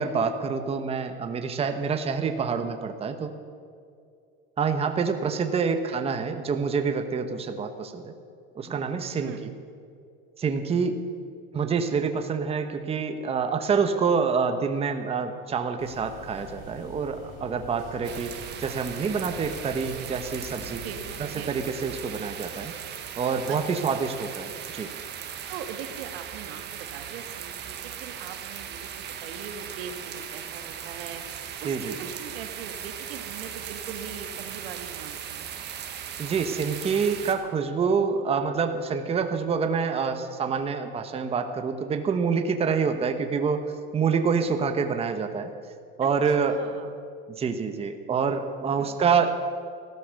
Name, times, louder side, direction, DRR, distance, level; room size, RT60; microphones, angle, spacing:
voice 1, 0.0-3.3 4.6-8.1 8.5-9.5 10.4-11.0 11.5-20.8 21.2-22.7 23.2-24.9 31.6-32.1 36.2-45.5 46.0-46.6 47.3-49.3, right 5 dB, 20° right, 7 dB, 1.0 m, -27 dB
sound 1, 15.8-21.3, left 2 dB, 50° left, 4.4 m, -45 dB
sound 2, 18.0-37.4, right 9 dB, 35° right, 1.5 m, -38 dB
voice 2, 23.5-24.0 25.5-35.6 42.6-42.7 46.0-46.1 46.4-46.9 48.8-49.0, right 7 dB, 90° right, 7 dB, 1.6 m, -41 dB
15.5 x 13.0 x 6.5 m, 2.3 s
supercardioid pair, 140°, 29 cm